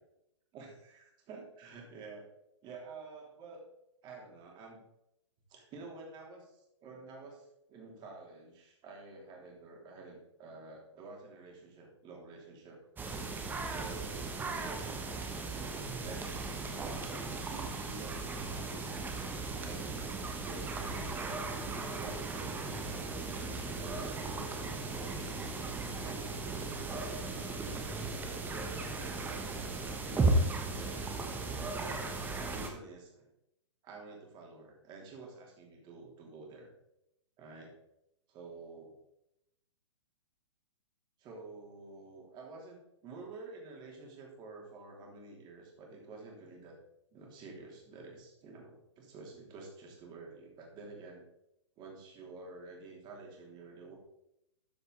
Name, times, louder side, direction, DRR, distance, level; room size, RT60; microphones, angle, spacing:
voice 1, 0.5-2.3 2.6-3.6 4.0-4.8 5.5-12.8 13.7-15.0 15.5-18.8 19.5-21.3 21.9-24.2 24.9-27.3 27.9-29.7 30.0-33.3 33.8-36.7 37.4-37.7 38.3-38.9 41.2-46.7 47.1-51.2 51.8-54.0, right 3 dB, 30° right, -1 dB, 3.1 m, -50 dB
sound 1, 13.0-32.7, right 3 dB, 10° right, 1.1 m, -36 dB
13.0 x 5.5 x 3.9 m, 0.82 s
figure-of-eight pair, 120°, 16 cm